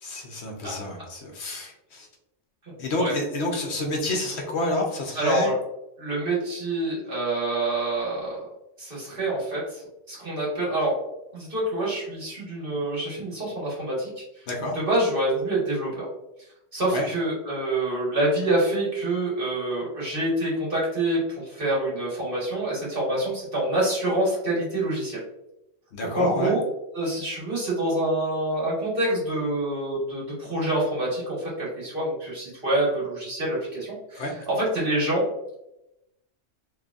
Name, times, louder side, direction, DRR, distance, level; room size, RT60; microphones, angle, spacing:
voice 1, 0.0-2.1 2.8-5.5 14.5-14.8 16.9-17.1 25.9-26.5 34.1-34.4, left 1 dB, 65° left, 1 dB, 1.0 m, -29 dB
voice 2, 5.1-5.5 6.0-8.5 8.8-10.9 11.3-14.2 14.7-16.0 16.7-25.2 26.1-26.6 26.9-34.2 34.7-35.2, right 1 dB, 45° right, -6 dB, 1.7 m, -26 dB
3.9 x 3.2 x 2.4 m, 0.87 s
omnidirectional pair, 1.3 m